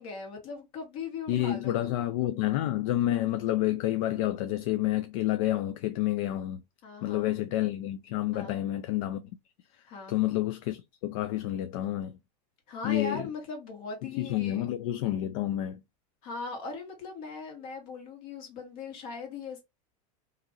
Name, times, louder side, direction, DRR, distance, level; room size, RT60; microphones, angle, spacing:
voice 1, 0.0-1.9 6.8-7.4 8.3-8.6 9.9-10.1 12.7-14.6 16.2-19.6, left 4 dB, 55° left, 1.5 m, -39 dB
voice 2, 1.3-6.6 7.0-9.2 10.1-12.2 12.8-13.2 14.2-15.8, left 14 dB, 75° left, 0.4 m, -29 dB
2.9 x 2.5 x 2.6 m
supercardioid pair, 140°, 18 cm